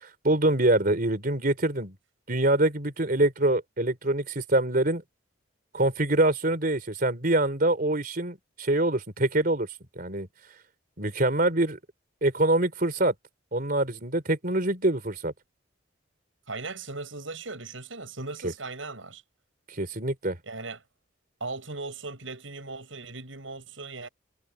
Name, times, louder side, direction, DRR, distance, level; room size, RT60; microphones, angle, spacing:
voice 1, 0.0-2.0 2.3-5.0 5.7-9.7 10.0-10.3 11.0-11.8 12.2-13.1 13.5-15.3 18.4-18.5 19.7-20.4, right 1 dB, 45° right, 3.7 m, -25 dB
voice 2, 16.5-19.2 20.4-20.8 21.4-24.1, right 3 dB, 85° right, 6.6 m, -38 dB
head